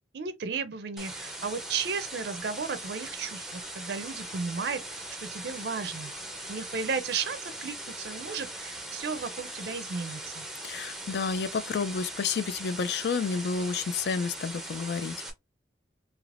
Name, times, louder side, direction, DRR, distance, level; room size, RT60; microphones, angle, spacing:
voice 1, 0.1-6.1 6.5-10.4, right 5 dB, 60° right, 0.4 m, -34 dB
sound 1, 1.0-15.3, right 1 dB, ahead, 0.5 m, -40 dB
voice 2, 10.6-15.1, left 5 dB, 60° left, 0.3 m, -30 dB
3.2 x 2.8 x 2.4 m
head